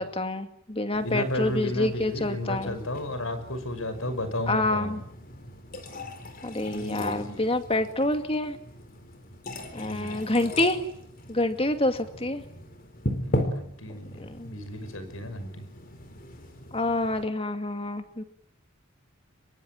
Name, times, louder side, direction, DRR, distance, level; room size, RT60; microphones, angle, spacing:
voice 1, 0.0-2.7 4.5-5.0 6.4-8.6 9.7-10.8 11.3-12.4 14.2-14.6 16.7-18.2, left 2 dB, 30° left, 8 dB, 2.4 m, -27 dB
sound 1, 0.9-17.2, left 1 dB, 45° left, 4.3 m, -38 dB
voice 2, 1.0-5.0 6.6-7.4 9.8-10.3 13.2-15.7, left 1 dB, 85° left, 10 dB, 6.0 m, -34 dB
26.0 x 23.0 x 9.3 m, 0.69 s
head